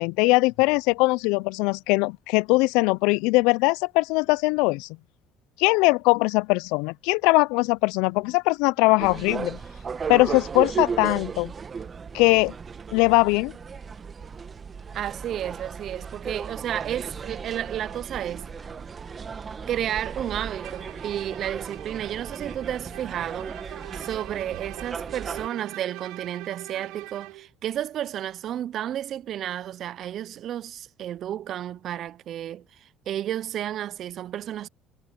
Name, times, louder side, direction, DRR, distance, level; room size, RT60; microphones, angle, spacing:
voice 1, 0.0-4.9 5.6-9.6 10.1-11.5 12.1-12.5 12.9-13.5, left 25 dB, 90° left, 0.3 m, -21 dB
sound 1, 7.2-23.4, right 1 dB, 5° right, 5.4 m, -55 dB
sound 2, 9.0-25.5, right 5 dB, 25° right, 1.5 m, -35 dB
voice 2, 14.9-18.5 19.7-23.5 23.9-34.7, right 11 dB, 45° right, 0.3 m, -32 dB
Bowed string instrument, 20.5-27.5, right 20 dB, 85° right, 0.8 m, -43 dB
cardioid pair, 140°, 0 cm